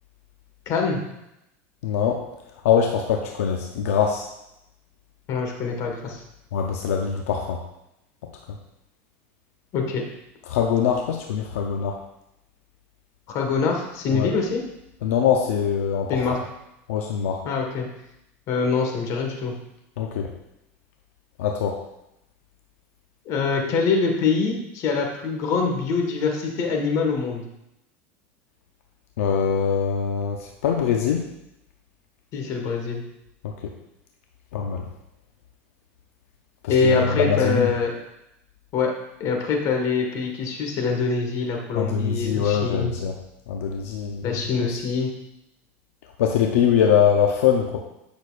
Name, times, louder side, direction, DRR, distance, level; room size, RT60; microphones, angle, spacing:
voice 1, 0.6-1.0 5.3-6.2 9.7-10.0 13.3-14.6 16.1-16.4 17.4-17.9 18.5-19.5 23.2-27.4 32.3-33.0 36.7-37.9 38.7-38.9 39.2-42.9 44.2-45.1, left 5 dB, 50° left, 2 dB, 1.6 m, -24 dB
voice 2, 1.8-2.2 2.6-4.3 6.5-7.6 10.5-12.0 14.1-14.3 15.0-16.4 16.9-17.4 20.0-20.3 21.4-21.8 29.2-31.3 33.4-33.7 34.5-34.9 36.6-37.7 41.7-43.2 43.5-44.3 46.2-47.8, left 7 dB, 85° left, 2 dB, 0.7 m, -23 dB
8.5 x 6.2 x 2.5 m, 0.86 s
supercardioid pair, 125°, 7 cm